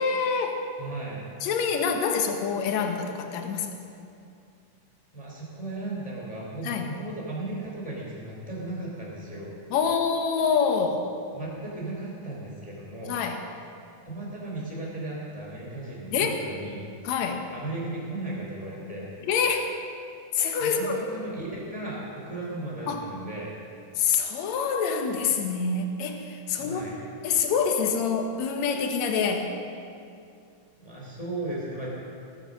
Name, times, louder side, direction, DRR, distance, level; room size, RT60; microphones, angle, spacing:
voice 1, 0.0-0.6 1.4-3.7 6.6-6.9 9.7-11.1 13.0-13.4 16.1-16.4 17.0-17.4 19.2-19.7 20.3-21.0 22.9-23.0 24.0-26.8 27.2-29.5, left 6 dB, 65° left, 4 dB, 2.2 m, -26 dB
voice 2, 0.8-1.2 5.1-9.5 11.3-13.2 14.0-16.8 17.5-19.1 20.6-23.5 26.5-27.0 30.8-31.9, right 2 dB, 10° left, -4 dB, 2.8 m, -36 dB
18.0 x 9.2 x 6.4 m, 2.5 s
omnidirectional pair, 4.0 m